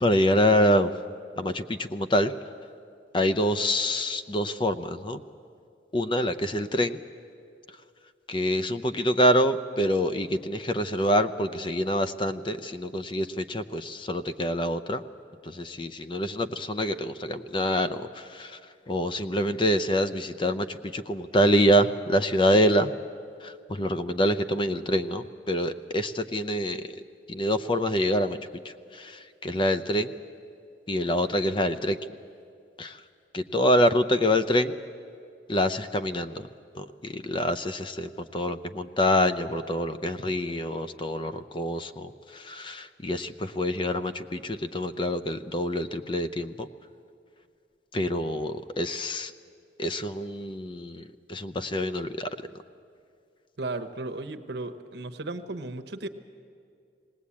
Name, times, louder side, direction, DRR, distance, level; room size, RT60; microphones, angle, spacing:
voice 1, 0.0-0.9 1.4-2.3 3.1-5.2 5.9-7.0 8.3-15.0 15.4-18.6 18.9-22.9 23.4-27.0 27.3-28.4 28.6-30.1 30.9-32.0 32.8-33.0 33.3-34.8 35.5-36.5 36.7-46.7 47.9-49.3 49.8-52.3, equal, 30° left, 11 dB, 0.6 m, -26 dB
voice 2, 53.6-56.1, right 2 dB, 70° right, 7 dB, 1.0 m, -35 dB
19.5 x 18.5 x 8.5 m, 2.4 s
head